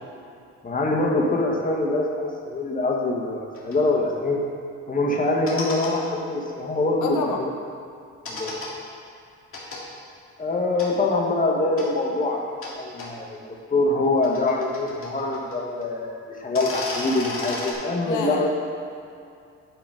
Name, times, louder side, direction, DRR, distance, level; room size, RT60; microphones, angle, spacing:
voice 1, 0.6-4.4 4.9-7.5 8.3-8.5 10.4-18.5, left 2 dB, 30° left, -1 dB, 1.3 m, -24 dB
sound 1, 3.5-3.8 5.3-5.9 8.3-8.7 9.5-9.8 10.8-10.9 11.8-11.9 12.6-12.7 13.0-13.1 14.0-15.6 15.8-15.9 16.4-17.7, left 2 dB, 45° left, 1.8 m, -33 dB
voice 2, 7.0-7.4 18.0-18.5, left 5 dB, 80° left, 1 dB, 0.8 m, -28 dB
9.5 x 4.0 x 5.1 m, 2.4 s
cardioid pair, 90°, 30 cm